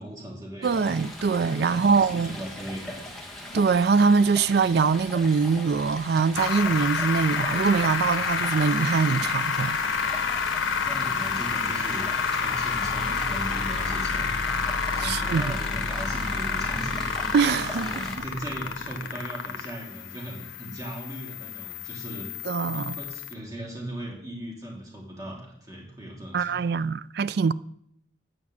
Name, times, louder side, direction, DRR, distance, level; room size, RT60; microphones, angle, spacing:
voice 1, 0.0-1.0 1.3-3.0 10.7-14.3 14.8-17.3 17.8-22.3 22.7-26.9, right 1 dB, 20° right, 2.6 m, -38 dB
Stream, 0.6-18.2, left 1 dB, ahead, 1.5 m, -40 dB
voice 2, 0.6-2.4 3.5-9.8 14.9-15.6 17.3-18.0 22.5-23.0 26.3-27.5, right 5 dB, 55° right, 0.4 m, -23 dB
sound 1, 6.3-23.3, left 5 dB, 90° left, 1.0 m, -29 dB
9.5 x 5.3 x 7.3 m
head